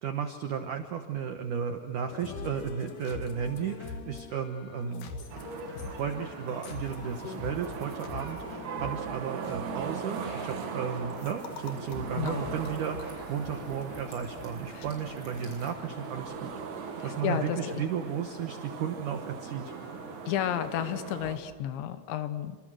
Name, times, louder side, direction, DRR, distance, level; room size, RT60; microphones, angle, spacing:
voice 1, 0.0-5.1 5.9-16.5 17.0-19.7, right 7 dB, 75° right, 7 dB, 1.8 m, -34 dB
sound 1, 2.1-21.5, left 4 dB, 50° left, 3.0 m, -45 dB
sound 2, 5.3-21.4, right 6 dB, 55° right, 2.3 m, -40 dB
sound 3, 11.0-16.6, equal, 25° left, 6.8 m, -53 dB
voice 2, 12.1-12.5 14.7-14.9 17.0-17.9 20.3-22.6, left 11 dB, 75° left, 10 dB, 3.4 m, -32 dB
29.0 x 26.0 x 6.4 m, 1.3 s
omnidirectional pair, 5.5 m